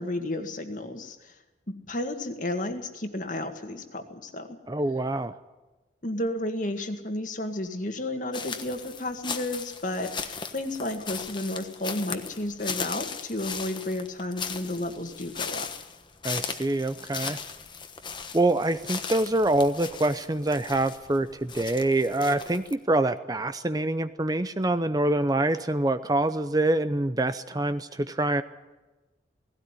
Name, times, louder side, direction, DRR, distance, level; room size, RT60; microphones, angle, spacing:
voice 1, 0.0-1.4 1.7-4.6 6.0-15.7, left 1 dB, 45° left, 6 dB, 2.0 m, -32 dB
voice 2, 4.7-5.4 16.2-17.4 18.3-28.4, right 2 dB, 20° right, 11 dB, 0.6 m, -25 dB
sound 1, 8.3-22.7, left 6 dB, 25° left, 1.2 m, -37 dB
18.0 x 17.0 x 9.9 m, 1.1 s
head